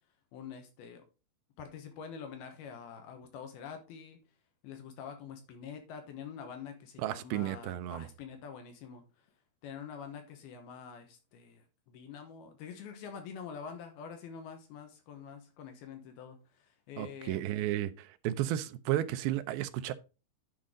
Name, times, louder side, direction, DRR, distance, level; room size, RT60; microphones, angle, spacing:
voice 1, 0.3-1.0 1.6-4.2 4.6-9.3 9.6-17.4, left 7 dB, 80° left, 3.1 m, -46 dB
voice 2, 7.0-8.1 17.0-19.9, right 13 dB, 80° right, 2.4 m, -33 dB
10.5 x 5.2 x 3.8 m
omnidirectional pair, 4.5 m